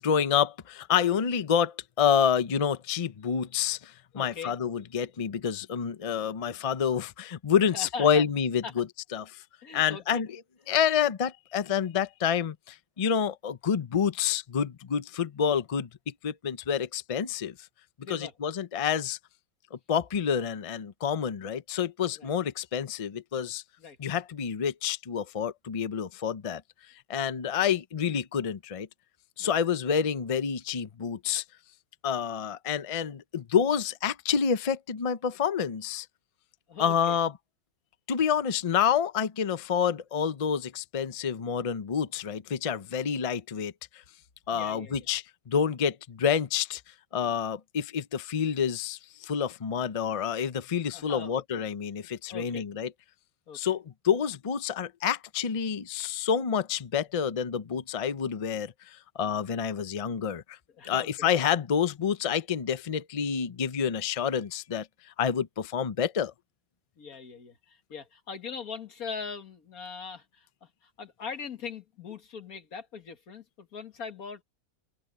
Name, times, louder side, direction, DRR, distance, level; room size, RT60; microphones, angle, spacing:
voice 1, 0.0-8.8 9.1-9.4 9.7-10.3 10.7-17.5 18.1-19.2 19.7-23.6 24.0-26.6 27.1-28.9 29.4-31.4 32.0-36.1 36.8-37.3 38.1-44.0 44.5-46.8 47.1-52.9 53.5-60.6 60.8-64.9 65.2-66.3, left 7 dB, 35° left, 0.5 m, -28 dB
voice 2, 4.1-4.6 7.7-8.2 8.6-8.7 9.6-10.2 18.0-18.3 22.2-22.3 23.8-24.0 29.4-29.6 36.7-37.2 44.5-45.1 50.9-51.4 52.3-52.7 53.5-53.6 60.7-61.3 67.0-74.4, left 5 dB, 90° left, 2.2 m, -41 dB
open air
omnidirectional pair, 1.5 m